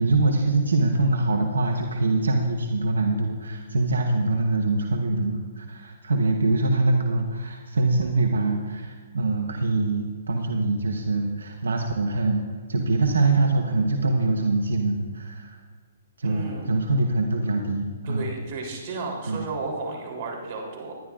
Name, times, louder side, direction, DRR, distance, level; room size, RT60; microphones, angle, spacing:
voice 1, 0.0-12.4 12.7-15.6 16.2-18.2 19.3-19.4, right 2 dB, 80° right, 4 dB, 1.0 m, -24 dB
voice 2, 16.2-16.8 18.0-20.9, right 3 dB, 50° right, 0 dB, 3.4 m, -33 dB
20.0 x 11.5 x 2.5 m, 1.5 s
hypercardioid pair, 135°, 0 cm